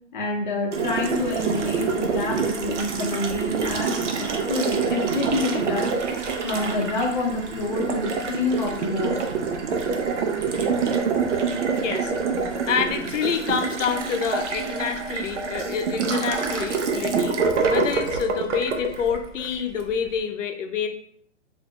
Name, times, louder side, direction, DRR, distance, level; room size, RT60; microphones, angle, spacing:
voice 1, 0.1-5.9 6.4-9.2, left 2 dB, 40° left, 1 dB, 0.7 m, -27 dB
Water tap faucet, 0.7-19.9, right 5 dB, 70° right, 0.7 m, -26 dB
voice 2, 11.8-12.1 12.5-17.4 17.7-20.9, left 7 dB, 85° left, 6 dB, 0.6 m, -27 dB
3.2 x 2.6 x 2.9 m, 0.65 s
hypercardioid pair, 175°, 37 cm